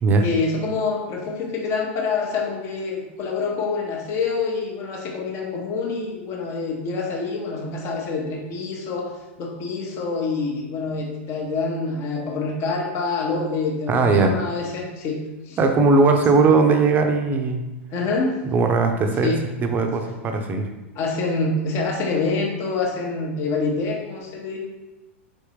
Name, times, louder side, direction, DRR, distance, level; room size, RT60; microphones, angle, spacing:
voice 1, 0.2-9.1 9.4-15.6 16.3-16.4 17.9-18.4 19.2-19.4 21.0-24.6, left 4 dB, 40° left, 0 dB, 0.8 m, -26 dB
voice 2, 13.9-14.3 15.6-17.6 18.5-19.3 19.6-20.7, right 4 dB, 25° right, 5 dB, 0.5 m, -18 dB
4.1 x 3.4 x 3.1 m, 1.1 s
hypercardioid pair, 105°, 7 cm